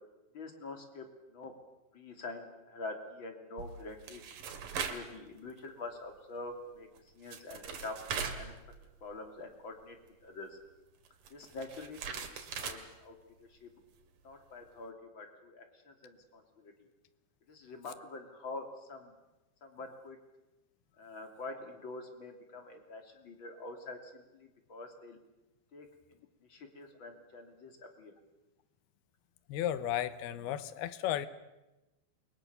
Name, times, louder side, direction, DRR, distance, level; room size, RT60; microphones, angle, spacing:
voice 1, 0.3-1.5 1.9-4.2 4.8-6.9 7.1-7.9 8.3-8.5 9.0-10.0 10.2-10.5 11.3-13.1 13.4-13.7 14.2-16.7 17.5-19.1 19.6-20.2 21.0-25.2 25.7-25.9 26.5-28.1, left 2 dB, 30° left, 5 dB, 3.0 m, -46 dB
sound 1, 3.6-5.1 5.5-5.7 6.9-7.0 7.2-9.1 9.4-9.5 11.0-12.8, right 6 dB, 55° right, 3.3 m, -40 dB
voice 2, 29.5-31.3, left 11 dB, 70° left, 13 dB, 2.8 m, -34 dB
29.0 x 23.0 x 6.9 m, 1.0 s
omnidirectional pair, 5.2 m